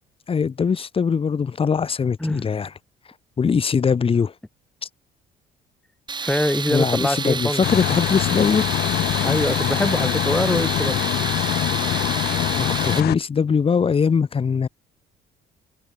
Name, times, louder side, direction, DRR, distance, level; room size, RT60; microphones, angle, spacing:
voice 1, 0.3-2.7 3.4-4.3 6.7-8.7 12.6-14.7, left 6 dB, 35° left, 3.0 m, -21 dB
Tools, 6.1-13.0, right 5 dB, 25° right, 2.5 m, -29 dB
voice 2, 6.2-7.6 9.2-11.0, left 1 dB, 5° left, 2.9 m, -23 dB
sound 1, 7.6-13.1, left 15 dB, 70° left, 0.9 m, -23 dB
cardioid pair, 110°, 17 cm